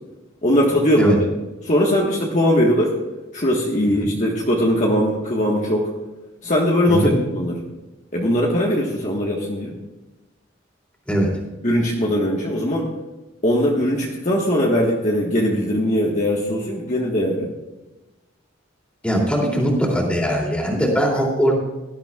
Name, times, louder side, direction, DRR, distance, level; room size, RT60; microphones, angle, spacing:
voice 1, 0.4-1.1 1.6-2.9 3.3-5.9 6.4-7.7 8.1-9.7 11.6-12.9 13.4-17.5, equal, 40° left, -2 dB, 1.5 m, -20 dB
voice 2, 19.0-21.5, equal, 5° left, -2 dB, 2.9 m, -20 dB
18.5 x 12.0 x 2.4 m, 1.1 s
head